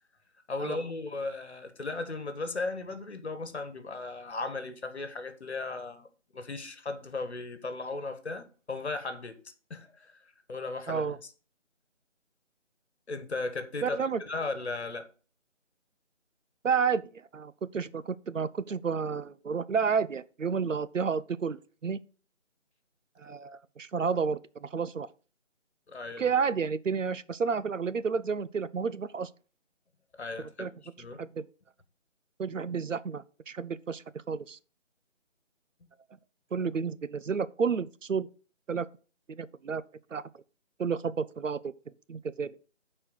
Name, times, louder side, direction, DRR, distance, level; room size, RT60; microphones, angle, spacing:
voice 1, 0.5-6.1 6.3-9.4 9.7-11.2 13.1-14.0 14.2-15.1 25.9-26.3 30.2-31.2, left 3 dB, 60° left, 1.5 m, -36 dB
voice 2, 10.9-11.2 13.8-14.2 16.6-17.0 17.3-22.0 23.2-25.1 26.2-29.3 30.6-30.7 31.2-31.4 32.4-34.6 36.5-38.3 38.7-38.9 39.3-39.8 40.1-40.2 40.8-41.7 42.1-42.5, right 6 dB, 90° right, 0.7 m, -31 dB
8.2 x 4.4 x 6.3 m
figure-of-eight pair, 165°, 37 cm